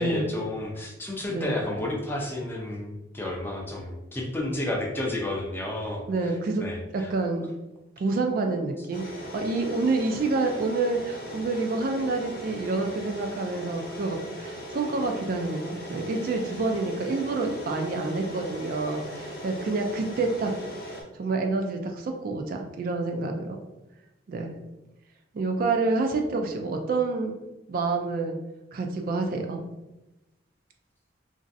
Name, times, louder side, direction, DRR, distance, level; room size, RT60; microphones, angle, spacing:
voice 1, 0.0-7.1, left 1 dB, 10° left, -1 dB, 0.5 m, -31 dB
voice 2, 6.1-6.6 6.9-7.5 8.0-9.1 9.3-20.5 21.1-23.6 24.3-24.5 25.3-27.3 27.7-28.4 28.7-29.6, right 3 dB, 50° right, 3 dB, 0.3 m, -28 dB
sound 1, 8.9-21.0, equal, 55° left, 0.6 m, -39 dB
3.0 x 2.5 x 2.5 m, 0.99 s
head